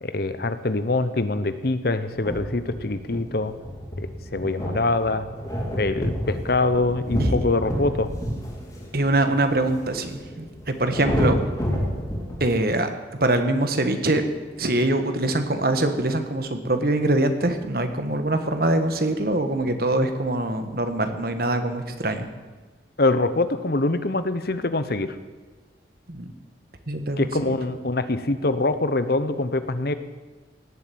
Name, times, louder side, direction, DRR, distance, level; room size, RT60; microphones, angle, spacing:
voice 1, 0.0-3.5 4.0-5.3 5.7-8.1 23.0-25.1 27.2-29.9, left 2 dB, 55° left, 11 dB, 0.9 m, -24 dB
sound 1, 2.1-12.5, equal, 20° left, 3.2 m, -30 dB
voice 2, 8.9-11.4 12.4-12.9 13.2-14.2 14.6-22.3 26.1-26.3 26.9-27.3, right 2 dB, 50° right, 8 dB, 1.5 m, -23 dB
17.5 x 8.0 x 9.3 m, 1.3 s
head